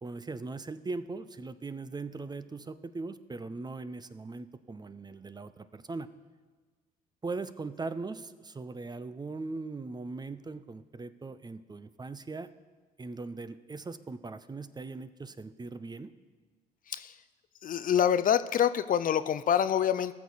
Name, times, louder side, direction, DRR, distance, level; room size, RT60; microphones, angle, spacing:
voice 1, 0.0-6.1 7.2-12.5 13.0-16.1, right 3 dB, 20° right, 13 dB, 0.6 m, -40 dB
voice 2, 16.9-17.2 17.6-20.1, left 9 dB, 45° left, 13 dB, 0.5 m, -26 dB
18.5 x 6.6 x 4.1 m, 1.4 s
hypercardioid pair, 55°, 19 cm